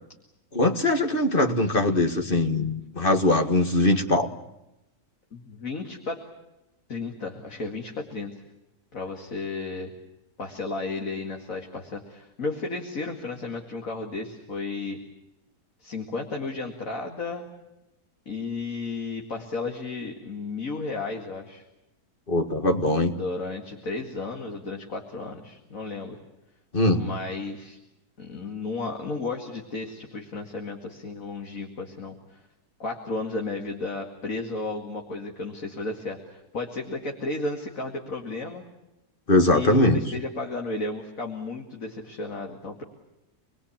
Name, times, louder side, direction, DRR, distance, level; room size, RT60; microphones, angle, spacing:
voice 1, 0.5-4.3 22.3-23.1 26.7-27.0 39.3-40.0, left 2 dB, 35° left, 6 dB, 1.9 m, -21 dB
voice 2, 5.3-6.2 6.9-8.3 8.9-9.9 10.4-15.0 15.8-17.4 18.3-21.7 23.1-26.2 26.9-27.8 28.2-32.4 32.8-38.6 39.5-42.8, left 3 dB, 60° left, 2 dB, 2.6 m, -33 dB
28.0 x 21.0 x 8.7 m, 0.92 s
omnidirectional pair, 1.6 m